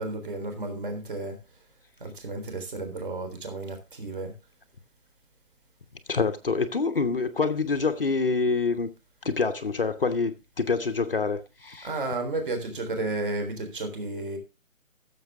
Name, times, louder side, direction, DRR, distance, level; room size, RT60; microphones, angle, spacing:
voice 1, 0.0-1.4 2.0-4.3 11.8-14.4, right 2 dB, 40° right, 3.7 m, -32 dB
voice 2, 6.1-8.9 9.2-11.9, left 4 dB, 40° left, 0.9 m, -26 dB
15.0 x 7.2 x 3.5 m
hypercardioid pair, 170°, 41 cm